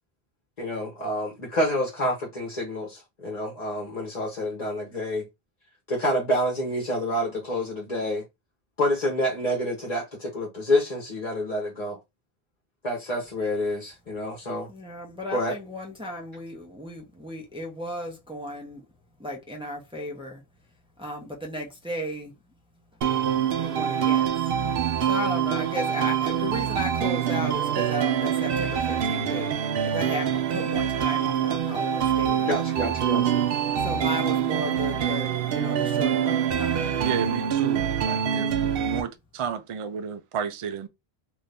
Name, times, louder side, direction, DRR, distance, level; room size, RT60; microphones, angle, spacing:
voice 1, 0.6-5.2 5.9-8.2 8.8-11.9 12.8-14.7 15.3-15.5 32.4-33.4, left 1 dB, 40° left, 1.1 m, -28 dB
voice 2, 14.7-18.9 19.2-20.4 21.0-22.3 23.5-24.3 25.0-32.6 33.8-36.9, left 1 dB, 5° right, 0.8 m, -35 dB
sound 1, 23.0-39.0, right 9 dB, 70° right, 0.8 m, -25 dB
voice 3, 37.0-38.5 38.8-40.9, right 7 dB, 50° right, 0.4 m, -32 dB
2.7 x 2.6 x 3.4 m
omnidirectional pair, 1.0 m